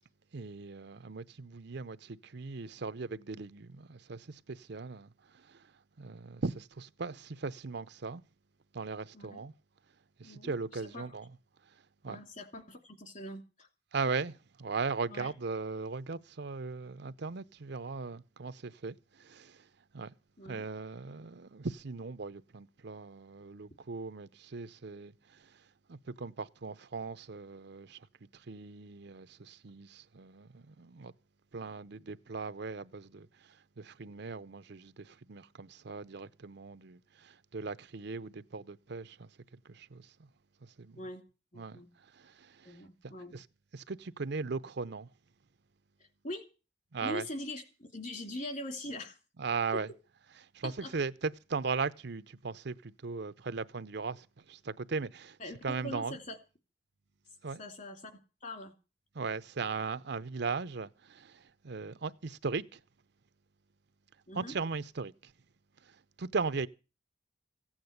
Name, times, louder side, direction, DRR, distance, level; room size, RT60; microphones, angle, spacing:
voice 1, 0.3-5.1 5.3-5.7 6.0-8.2 8.7-9.5 10.2-11.3 12.0-12.2 13.9-19.6 19.9-20.1 20.4-25.6 25.9-28.1 28.3-31.1 31.5-33.3 33.8-39.3 39.6-40.1 40.6-41.0 41.6-41.8 42.1-43.4 43.7-45.1 46.9-47.3 49.4-49.9 50.5-55.4 55.6-56.2 57.4-57.6 59.1-62.8 64.3-65.3 65.9-66.7, right 4 dB, 65° right, 0.7 m, -38 dB
voice 2, 10.2-11.2 12.1-13.7 15.1-15.3 20.4-20.6 40.9-41.2 41.5-41.9 42.6-43.3 46.2-46.5 47.0-49.2 49.7-49.8 50.6-50.9 55.4-56.4 57.6-58.7 64.3-64.5, left 1 dB, 45° left, 2.8 m, -42 dB
16.0 x 8.8 x 8.0 m
head